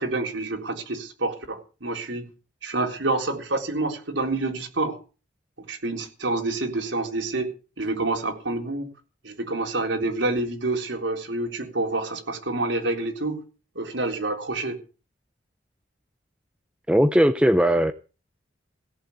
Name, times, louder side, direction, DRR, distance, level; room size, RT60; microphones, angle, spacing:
voice 1, 0.0-2.2 2.6-5.0 5.7-7.5 7.8-8.9 9.2-13.4 13.8-14.8, right 2 dB, 85° right, 3.9 m, -27 dB
voice 2, 16.9-17.9, equal, 5° right, 0.7 m, -18 dB
17.5 x 7.6 x 8.4 m
head